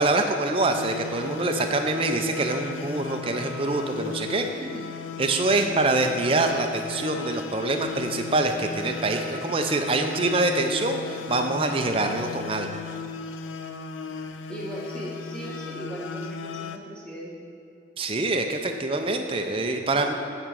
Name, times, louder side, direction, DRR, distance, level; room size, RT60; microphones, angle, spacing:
voice 1, 0.0-4.5 5.2-12.7 18.0-20.1, right 2 dB, 30° right, 4 dB, 0.5 m, -25 dB
sound 1, 0.6-16.8, left 4 dB, 85° left, 0.4 m, -36 dB
voice 2, 4.5-5.0 5.5-5.8 14.0-14.2 14.5-17.5, equal, 5° left, -6 dB, 1.3 m, -38 dB
8.9 x 3.6 x 6.8 m, 2.7 s
head